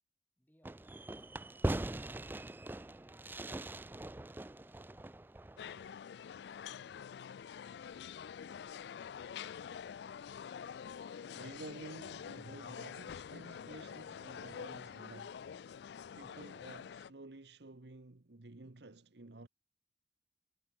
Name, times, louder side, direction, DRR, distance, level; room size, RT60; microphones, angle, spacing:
voice 1, 0.4-2.7, equal, 10° left, 7.9 m, -73 dB
Fireworks, 0.6-5.9, right 1 dB, 10° right, 0.4 m, -41 dB
sound 1, 5.6-17.1, left 7 dB, 75° left, 0.3 m, -47 dB
voice 2, 11.3-15.4 16.1-19.5, right 2 dB, 75° right, 1.1 m, -52 dB
head